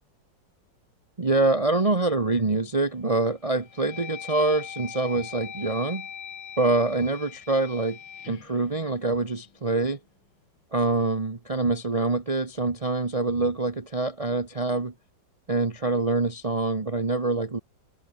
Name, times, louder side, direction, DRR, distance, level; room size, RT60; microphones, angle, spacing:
voice 1, 1.2-6.1 6.6-8.0 8.3-10.0 10.7-14.9 15.5-17.6, right 2 dB, 20° right, 1.0 m, -25 dB
sound 1, 2.5-3.0 3.5-9.6, left 8 dB, 80° left, 2.4 m, -42 dB
omnidirectional pair, 2.1 m